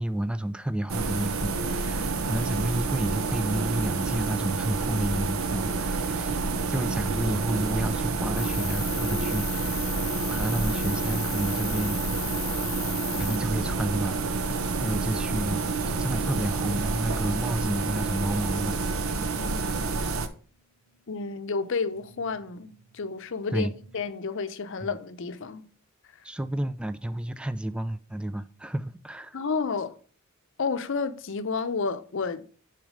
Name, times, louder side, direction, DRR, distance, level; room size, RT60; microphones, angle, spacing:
voice 1, 0.0-6.4 6.7-10.0 10.3-12.0 13.2-18.8 23.5-23.7 26.2-29.4, right 1 dB, 5° right, 0.3 m, -31 dB
sound 1, 0.9-20.3, right 4 dB, 70° right, 0.7 m, -28 dB
Cricket, 8.4-13.4, left 9 dB, 25° left, 0.9 m, -37 dB
sound 2, 20.6-24.1, right 2 dB, 30° right, 3.0 m, -50 dB
voice 2, 21.1-23.7 23.9-25.6 29.3-29.9 30.6-32.4, left 4 dB, 60° left, 0.6 m, -31 dB
6.3 x 4.4 x 5.0 m
head